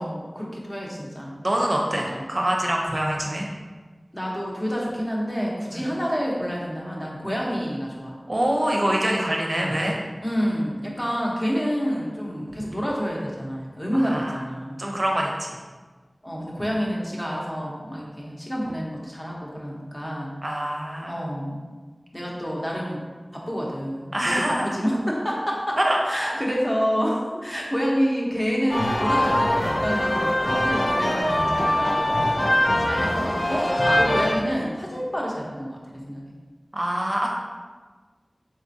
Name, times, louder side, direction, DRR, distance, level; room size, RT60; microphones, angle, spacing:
voice 1, 0.0-1.3 1.9-2.2 4.1-8.1 10.2-14.8 16.2-20.3 21.0-21.6 22.1-23.0 23.3-25.8 26.1-32.4 32.8-33.7 34.0-36.3, equal, 20° left, -4 dB, 0.9 m, -28 dB
voice 2, 1.4-3.5 5.7-5.8 8.3-10.0 14.0-14.4 14.8-15.6 20.4-21.2 24.1-24.8 25.8-26.0 26.3-26.4 33.9-34.1 36.7-37.3, right 1 dB, 45° right, -1 dB, 0.6 m, -25 dB
sound 1, 28.7-34.4, left 1 dB, 50° left, 0.5 m, -22 dB
4.2 x 3.6 x 2.7 m, 1.4 s
wide cardioid pair, 60°, 0 cm